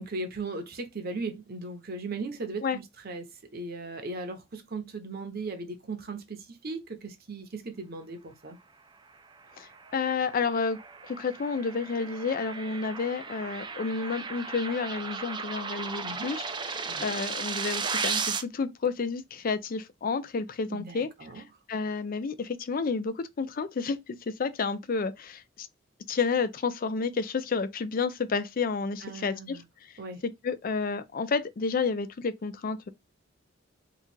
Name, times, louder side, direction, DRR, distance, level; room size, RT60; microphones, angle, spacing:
voice 1, 0.0-3.3 3.5-8.6 16.0-16.3 16.8-17.1 20.7-21.4 29.0-29.6 30.0-30.2, right 3 dB, 50° right, 0.8 m, -37 dB
sound 1, 9.5-18.4, right 5 dB, 25° right, 0.4 m, -35 dB
voice 2, 9.6-10.8 11.1-21.1 21.4-21.5 21.7-25.7 26.1-29.6 30.2-32.9, left 4 dB, 45° left, 0.4 m, -30 dB
3.0 x 2.4 x 4.3 m
head